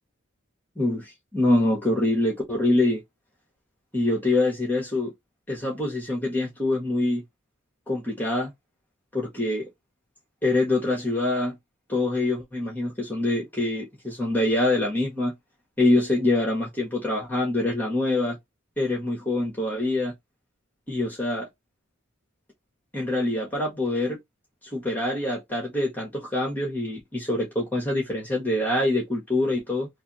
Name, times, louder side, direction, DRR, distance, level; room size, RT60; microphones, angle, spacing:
voice 1, 0.8-3.0 3.9-5.1 5.5-7.2 7.9-8.5 9.1-9.7 10.4-11.6 11.9-15.3 15.8-18.4 18.8-20.1 20.9-21.5 22.9-24.2 24.7-29.9, left 2 dB, 10° left, 1.2 m, -25 dB
3.3 x 2.6 x 2.9 m
head